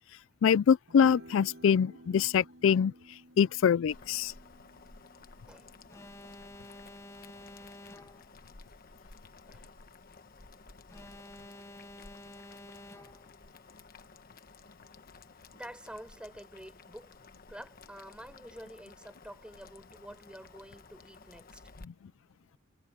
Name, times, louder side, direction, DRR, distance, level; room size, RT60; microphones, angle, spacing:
voice 1, 0.4-4.3 21.8-21.9, left 7 dB, 75° left, 0.3 m, -25 dB
sound 1, 0.9-7.4, right 1 dB, 65° right, 1.9 m, -55 dB
Boiling, 3.9-21.8, left 4 dB, 45° left, 1.2 m, -54 dB
Alarm, 5.9-8.4 10.9-13.4, left 2 dB, 15° left, 0.8 m, -50 dB
voice 2, 9.4-10.1 15.5-17.2 17.5-21.6, equal, 5° right, 5.3 m, -48 dB
head